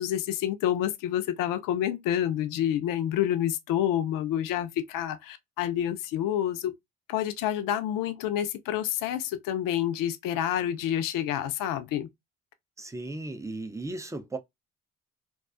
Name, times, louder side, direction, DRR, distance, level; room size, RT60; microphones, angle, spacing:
voice 1, 0.0-6.7 7.1-12.1, left 11 dB, 70° left, 0.5 m, -28 dB
voice 2, 12.8-14.4, right 2 dB, 10° right, 0.4 m, -36 dB
2.3 x 2.2 x 2.4 m
hypercardioid pair, 50°, 34 cm